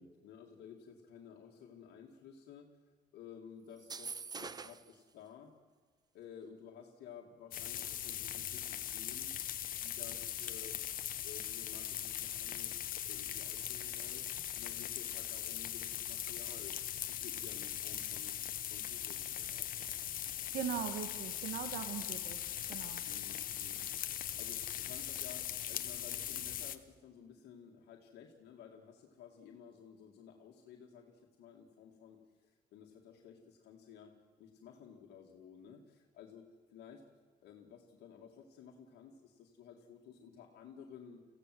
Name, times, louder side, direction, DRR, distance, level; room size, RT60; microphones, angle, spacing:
voice 1, 0.0-2.7 3.1-5.5 6.1-9.3 9.7-10.8 11.2-12.8 13.0-14.2 14.6-16.8 17.0-18.3 18.7-20.2 23.0-34.1 34.4-37.0 37.4-41.3, left 7 dB, 75° left, 0 dB, 2.3 m, -54 dB
sound 1, 3.8-4.9, right 5 dB, 25° right, 0.7 m, -44 dB
sound 2, 7.5-26.8, left 11 dB, 55° left, 1.3 m, -40 dB
voice 2, 20.5-22.4 22.7-23.0, right 8 dB, 75° right, 8 dB, 1.6 m, -40 dB
22.5 x 16.0 x 7.8 m, 1.5 s
cardioid pair, 110°, 17 cm